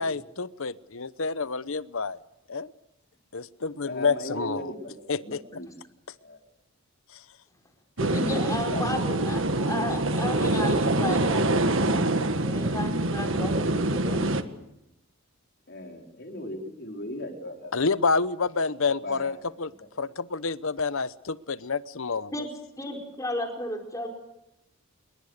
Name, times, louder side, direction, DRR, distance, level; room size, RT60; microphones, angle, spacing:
voice 1, 0.0-2.2 2.5-2.7 3.3-4.6 5.1-5.4 17.7-19.7 20.0-22.3, left 4 dB, 65° left, 16 dB, 0.9 m, -28 dB
voice 2, 3.8-5.8 6.2-6.4 8.0-9.3 15.7-17.7 19.0-19.4 19.8-19.9, left 1 dB, 50° left, 3 dB, 4.6 m, -37 dB
sound 1, 8.0-14.4, right 2 dB, 60° right, 1.6 m, -25 dB
voice 3, 8.1-14.3 22.3-22.5 22.8-24.1, left 1 dB, 15° left, 3 dB, 5.0 m, -34 dB
28.0 x 22.5 x 6.7 m, 0.87 s
head